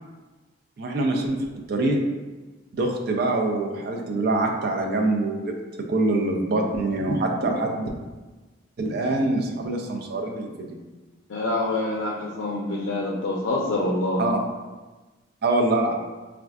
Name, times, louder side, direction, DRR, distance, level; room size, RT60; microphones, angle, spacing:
voice 1, 0.8-1.4 1.7-2.0 2.7-5.5 5.9-7.9 8.8-10.8 14.2-14.4 15.4-15.9, right 2 dB, 55° right, 2 dB, 0.4 m, -24 dB
voice 2, 11.3-14.3, left 2 dB, 80° left, -2 dB, 0.4 m, -26 dB
4.3 x 2.4 x 2.3 m, 1.2 s
head